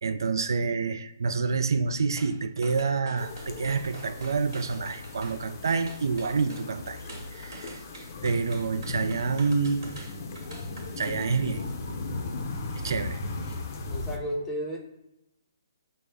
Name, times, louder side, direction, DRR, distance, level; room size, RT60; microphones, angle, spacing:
voice 1, 0.0-7.8 8.2-9.9 11.0-11.7 12.7-13.2, right 4 dB, 75° right, 0.3 m, -28 dB
sound 1, 2.2-2.4 2.6-5.4 5.7-6.7 7.1-11.2 11.6-11.7, right 2 dB, 55° right, 1.2 m, -45 dB
sound 2, 3.2-14.2, left 3 dB, 45° left, 0.5 m, -37 dB
voice 2, 13.8-14.8, equal, 10° left, 0.7 m, -32 dB
5.1 x 2.0 x 3.4 m
hypercardioid pair, 150°, 2 cm